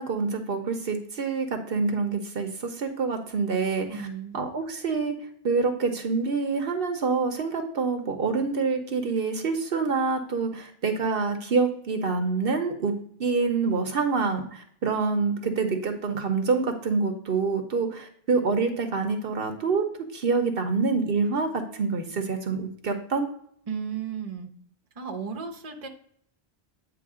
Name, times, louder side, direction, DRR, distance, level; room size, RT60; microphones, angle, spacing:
voice 1, 0.0-4.1 4.3-5.1 5.4-12.9 13.2-23.3, right 4 dB, 65° right, 5 dB, 1.0 m, -26 dB
voice 2, 3.9-4.4 23.7-24.5 25.0-25.9, right 6 dB, 40° right, 4 dB, 0.9 m, -34 dB
8.6 x 3.2 x 4.8 m, 0.65 s
omnidirectional pair, 1.1 m